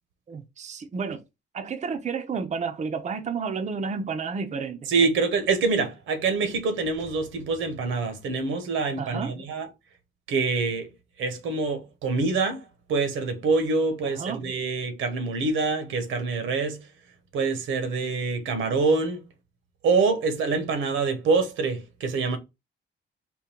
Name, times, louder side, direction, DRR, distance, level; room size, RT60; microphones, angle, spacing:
voice 1, 0.3-1.2 1.5-4.9 9.0-9.4 14.0-14.5, right 5 dB, 35° right, 0.6 m, -31 dB
voice 2, 4.9-9.7 10.3-10.9 11.2-16.8 17.3-19.2 19.8-22.4, right 4 dB, 80° right, 1.1 m, -25 dB
3.7 x 2.2 x 4.3 m
cardioid pair, 90°, 20 cm